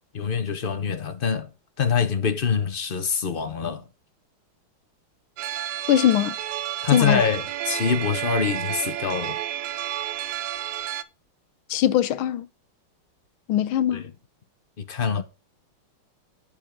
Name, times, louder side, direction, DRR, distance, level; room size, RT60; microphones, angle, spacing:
voice 1, 0.1-1.5 1.8-3.8 6.8-9.4 13.9-14.1 14.8-15.2, left 6 dB, 50° left, 0.6 m, -25 dB
sound 1, 5.4-11.0, right 11 dB, 70° right, 1.1 m, -31 dB
voice 2, 5.9-6.4 6.9-7.2 11.7-12.5 13.5-14.0, left 11 dB, 75° left, 1.5 m, -21 dB
9.0 x 6.5 x 5.2 m
omnidirectional pair, 2.3 m